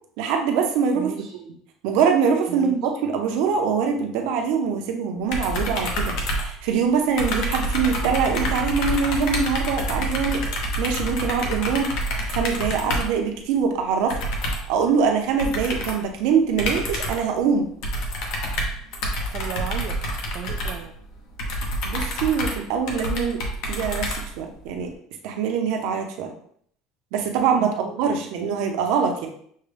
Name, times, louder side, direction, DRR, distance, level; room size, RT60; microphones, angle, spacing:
voice 1, 0.2-1.1 1.8-6.1 6.4-10.4 10.8-11.9 12.3-14.2 14.7-17.7 21.8-23.4 23.7-24.9 25.2-26.3 27.1-29.3, right 6 dB, 60° right, 3 dB, 0.7 m, -23 dB
voice 2, 0.9-1.4 2.5-2.8 19.3-20.0 20.3-20.9 27.6-28.3, right 9 dB, 40° right, 2 dB, 0.3 m, -35 dB
sound 1, 5.3-6.9 7.2-13.2 14.1-14.8 15.4-16.1 16.6-17.3 17.8-24.6, equal, 55° left, 0.9 m, -27 dB
6.4 x 2.3 x 3.3 m, 0.64 s
cardioid pair, 175°, 0 cm